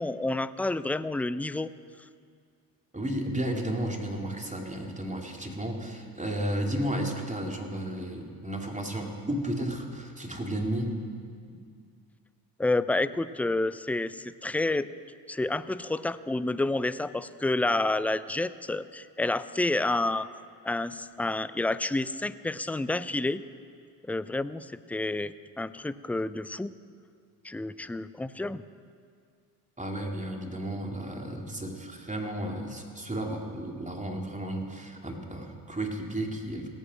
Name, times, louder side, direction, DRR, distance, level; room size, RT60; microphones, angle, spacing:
voice 1, 0.0-1.7 12.6-14.9 15.3-20.3 20.6-23.4 24.0-26.7 27.4-28.6, left 2 dB, 5° left, 15 dB, 0.3 m, -29 dB
voice 2, 2.9-11.0 29.8-36.7, right 1 dB, 15° right, 2 dB, 2.8 m, -33 dB
17.5 x 9.1 x 6.4 m, 2.1 s
hypercardioid pair, 45°, 50 cm